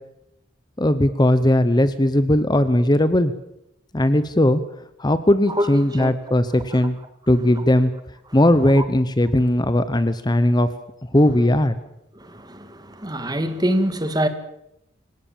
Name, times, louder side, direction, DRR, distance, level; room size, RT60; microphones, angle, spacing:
voice 1, 0.8-3.3 3.9-4.6 5.0-7.0 7.3-7.9 8.3-10.7 11.1-11.8, left 1 dB, 20° left, 0.9 m, -18 dB
voice 2, 5.5-6.1 6.7-6.8 8.8-8.9 12.2-14.3, equal, 20° right, 2.1 m, -25 dB
26.5 x 17.5 x 7.3 m
head